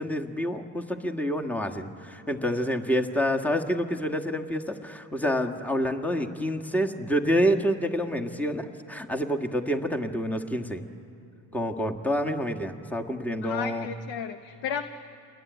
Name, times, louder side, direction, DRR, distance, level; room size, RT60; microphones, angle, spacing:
voice 1, 0.0-10.9 11.5-13.9, equal, 5° left, 3 dB, 1.8 m, -28 dB
voice 2, 13.4-14.8, left 8 dB, 75° left, 9 dB, 1.1 m, -33 dB
29.0 x 21.5 x 9.4 m, 2.9 s
cardioid pair, 65°, 45 cm